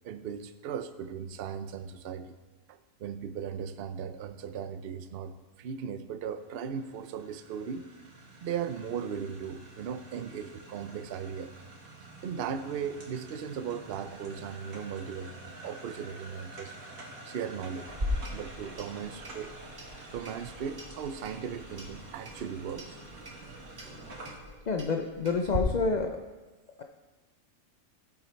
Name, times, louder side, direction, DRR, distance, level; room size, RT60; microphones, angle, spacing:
voice 1, 0.0-2.4 2.7-7.9 8.4-11.5 12.2-16.7 17.2-17.9 18.3-19.5 20.1-23.0, right 7 dB, 55° right, 10 dB, 0.7 m, -37 dB
sound 1, 6.4-24.4, right 2 dB, 80° right, 2.2 m, -48 dB
Clock, 17.9-25.6, left 1 dB, 35° right, 1.8 m, -40 dB
voice 2, 24.7-26.3, left 4 dB, 50° left, 4 dB, 0.5 m, -28 dB
14.0 x 7.1 x 4.4 m, 1.2 s
omnidirectional pair, 1.5 m